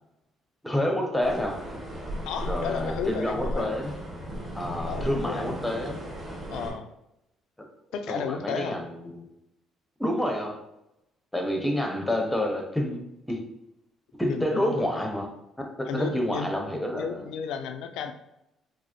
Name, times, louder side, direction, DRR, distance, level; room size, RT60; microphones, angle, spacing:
voice 1, 0.6-1.6 2.4-3.9 4.5-6.0 8.1-9.3 10.0-10.6 11.3-13.0 13.3-13.4 14.2-15.3 15.8-17.2, left 1 dB, 5° left, 2 dB, 0.7 m, -28 dB
sound 1, 1.2-6.7, equal, 30° right, 1.2 m, -35 dB
voice 2, 2.2-3.8 4.8-5.6 6.5-6.9 7.9-8.8 14.3-14.9 15.9-16.5 16.9-18.1, left 6 dB, 80° left, 7 dB, 0.3 m, -34 dB
4.7 x 2.0 x 2.9 m, 0.88 s
cardioid pair, 90°, 0 cm